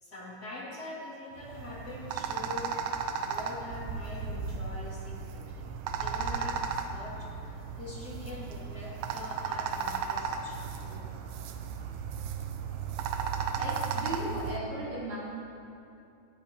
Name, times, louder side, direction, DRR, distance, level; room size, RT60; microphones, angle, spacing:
voice 1, 0.0-2.8 3.2-5.7 6.0-11.0 12.8-12.9, left 2 dB, 30° left, -6 dB, 2.1 m, -44 dB
sound 1, 1.4-14.6, right 6 dB, 80° right, 2.6 m, -35 dB
voice 2, 13.5-15.2, right 1 dB, 35° right, -9 dB, 4.2 m, -36 dB
17.0 x 13.5 x 2.9 m, 2.6 s
omnidirectional pair, 4.5 m